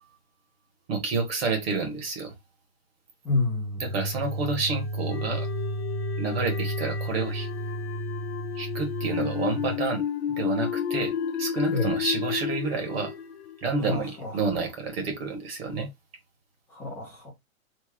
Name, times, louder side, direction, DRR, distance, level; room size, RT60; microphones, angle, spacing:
voice 1, 0.9-2.3 3.8-5.5 6.2-7.5 8.5-10.0 10.4-11.1 11.4-13.1 13.6-15.9, right 4 dB, 45° right, 1.4 m, -29 dB
voice 2, 3.2-3.8 11.7-11.9 13.8-14.3 16.7-17.3, left 3 dB, 5° left, 0.5 m, -28 dB
sound 1, 3.8-9.8, right 1 dB, 20° right, 0.9 m, -32 dB
sound 2, 5.1-14.3, left 8 dB, 50° left, 0.7 m, -32 dB
3.4 x 2.0 x 3.5 m
hypercardioid pair, 155°, 41 cm